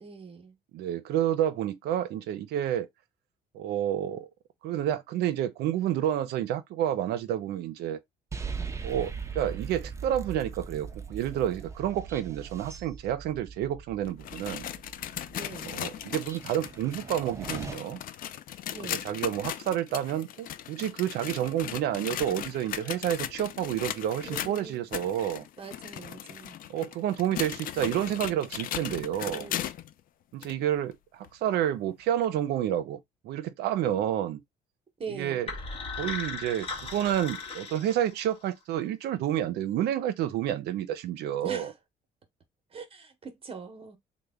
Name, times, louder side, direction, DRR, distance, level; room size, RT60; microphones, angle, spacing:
voice 1, 0.0-0.6 15.3-15.7 18.7-19.1 24.2-24.8 25.6-26.6 29.1-29.6 35.0-35.5 41.4-41.8 42.7-44.0, right 5 dB, 35° right, 0.9 m, -42 dB
voice 2, 0.7-2.9 3.5-4.3 4.6-8.0 8.8-14.7 15.7-18.0 18.9-25.5 26.7-29.5 30.3-34.4 35.1-35.5 36.0-41.7, right 11 dB, 75° right, 0.6 m, -29 dB
sound 1, 8.3-17.7, right 5 dB, 15° right, 0.5 m, -40 dB
sound 2, 14.1-29.9 30.4-30.5 31.2-31.3 32.2-32.3, left 11 dB, 55° left, 0.4 m, -38 dB
sound 3, 35.5-38.5, left 4 dB, 35° left, 0.9 m, -37 dB
3.2 x 2.1 x 3.4 m
cardioid pair, 110°, 17 cm